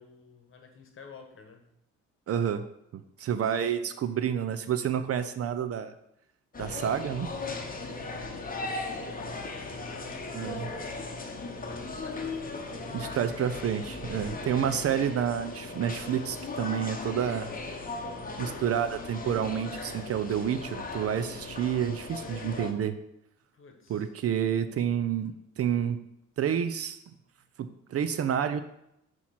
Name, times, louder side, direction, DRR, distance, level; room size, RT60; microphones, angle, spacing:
voice 1, 0.0-1.7 3.3-4.2 7.8-8.3 8.8-13.8 23.5-24.1, left 5 dB, 45° left, 5 dB, 1.1 m, -51 dB
voice 2, 2.3-2.6 2.9-5.9 6.6-7.3 10.3-10.6 12.9-17.5 18.4-23.0 23.9-26.0 26.4-27.0 27.6-28.6, right 8 dB, 50° right, 11 dB, 0.5 m, -29 dB
sound 1, 6.5-22.7, left 3 dB, 30° left, 0.9 m, -38 dB
sound 2, 12.9-16.4, right 1 dB, 20° right, 1.3 m, -52 dB
6.3 x 3.0 x 5.7 m, 0.79 s
cardioid pair, 90°, 30 cm